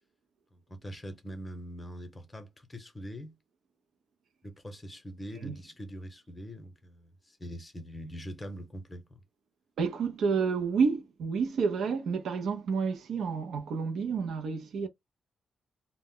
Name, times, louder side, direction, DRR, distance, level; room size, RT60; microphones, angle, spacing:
voice 1, 0.5-3.3 4.4-9.0, equal, 15° left, 0.7 m, -43 dB
voice 2, 9.8-14.9, right 5 dB, 75° right, 0.4 m, -29 dB
2.0 x 2.0 x 3.6 m
cardioid pair, 120°, 0 cm